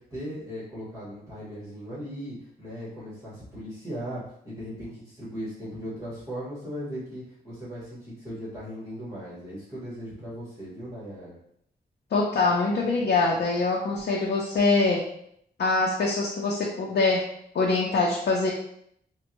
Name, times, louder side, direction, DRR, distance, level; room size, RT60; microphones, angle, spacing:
voice 1, 0.0-11.4, equal, 20° right, -9 dB, 1.4 m, -38 dB
voice 2, 12.1-15.0 15.6-17.2 17.5-18.5, left 3 dB, 75° left, -3 dB, 0.6 m, -24 dB
4.3 x 2.2 x 2.9 m, 0.71 s
wide cardioid pair, 175°, 17 cm